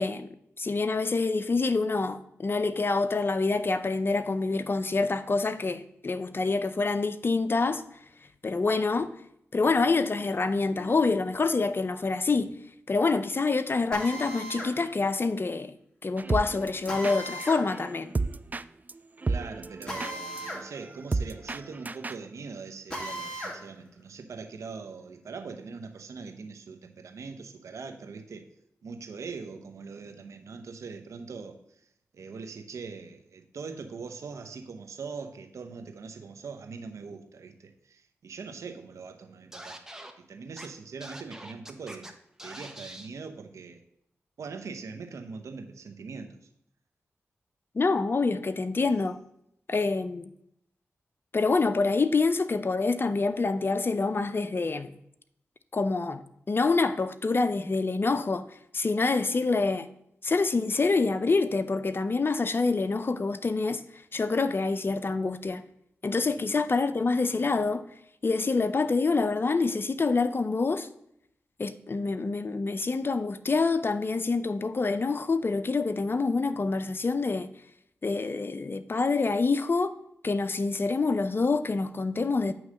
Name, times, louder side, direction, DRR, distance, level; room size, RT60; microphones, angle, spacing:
voice 1, 0.0-7.8 8.4-9.1 9.5-12.5 12.9-15.7 16.0-18.1 47.7-49.2 49.7-50.3 51.3-54.9 55.7-56.2 56.5-58.5 58.7-59.9 60.2-63.8 64.1-65.7 66.0-67.9 68.2-70.9 71.6-77.5 78.0-79.9 80.2-82.5, left 3 dB, 45° left, 0.6 m, -26 dB
Drill, 13.9-14.7 16.9-17.6 19.9-20.6 21.0-21.1 22.9-23.6, equal, 15° left, 2.2 m, -36 dB
sound 1, 16.2-22.3, right 3 dB, 30° right, 0.3 m, -33 dB
voice 2, 19.3-28.4 28.8-31.6 32.1-39.8 40.2-42.1 42.4-43.8 44.4-46.4 66.4-66.6, right 5 dB, 80° right, 0.9 m, -42 dB
Scratching (performance technique), 39.5-40.1 40.6-40.7 41.0-42.1 42.4-43.1, right 1 dB, 10° right, 1.0 m, -43 dB
8.5 x 3.1 x 6.3 m
cardioid pair, 40°, 5 cm